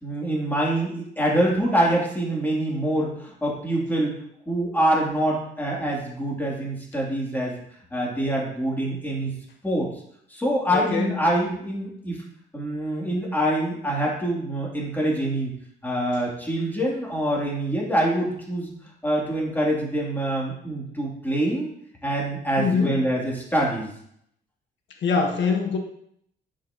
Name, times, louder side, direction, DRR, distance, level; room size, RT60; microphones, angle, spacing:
voice 1, 0.0-4.2 4.5-7.5 7.9-9.3 9.6-9.9 10.3-12.2 12.5-15.5 15.8-18.7 19.0-21.7 22.0-23.9, right 1 dB, 10° left, -4 dB, 3.2 m, -25 dB
voice 2, 10.7-11.2 22.6-23.0 25.0-25.8, left 5 dB, 65° left, 2 dB, 1.6 m, -23 dB
10.5 x 6.5 x 3.1 m, 0.71 s
cardioid pair, 90°, 20 cm